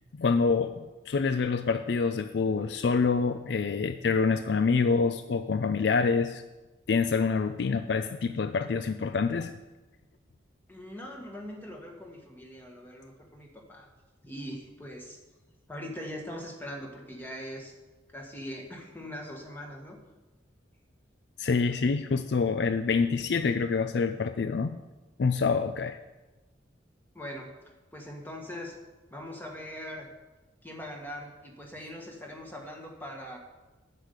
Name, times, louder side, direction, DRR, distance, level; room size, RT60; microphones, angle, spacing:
voice 1, 0.2-6.4 6.9-9.5 21.4-24.8 25.2-26.0, left 4 dB, 65° left, 9 dB, 0.4 m, -26 dB
voice 2, 10.7-13.9 14.2-15.2 15.7-17.7 18.1-20.0 23.4-23.6 27.1-27.5 27.9-28.8 29.1-30.1 30.6-33.4, equal, 10° left, 1 dB, 1.6 m, -41 dB
9.7 x 6.7 x 8.1 m, 1.2 s
head